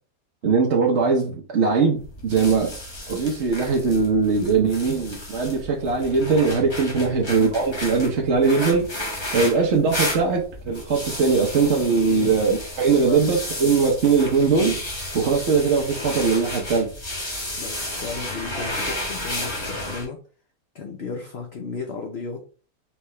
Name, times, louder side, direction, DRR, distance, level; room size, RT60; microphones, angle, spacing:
voice 1, 0.4-2.7 3.1-14.8 15.1-16.9, right 4 dB, 50° right, -1 dB, 1.0 m, -21 dB
sound 1, 2.0-20.1, left 1 dB, 20° left, 1.1 m, -32 dB
voice 2, 17.6-20.2 20.7-22.4, left 4 dB, 50° left, 1 dB, 0.8 m, -34 dB
4.7 x 3.5 x 3.2 m, 0.38 s
omnidirectional pair, 1.8 m